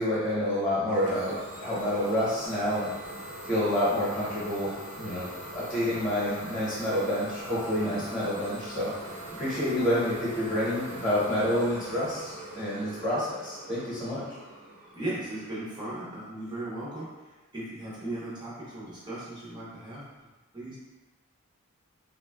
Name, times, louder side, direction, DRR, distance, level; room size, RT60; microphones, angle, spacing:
voice 1, 0.0-2.9 3.4-8.9 9.4-14.2, left 1 dB, 10° left, -10 dB, 1.1 m, -28 dB
Idling / Domestic sounds home sounds, 0.9-16.4, right 1 dB, 75° right, 1.1 m, -42 dB
voice 2, 5.9-6.2 7.8-8.1 9.3-9.4 14.9-20.0 20.5-20.8, right 1 dB, 20° right, -8 dB, 0.8 m, -37 dB
3.6 x 2.3 x 2.2 m, 1.1 s
head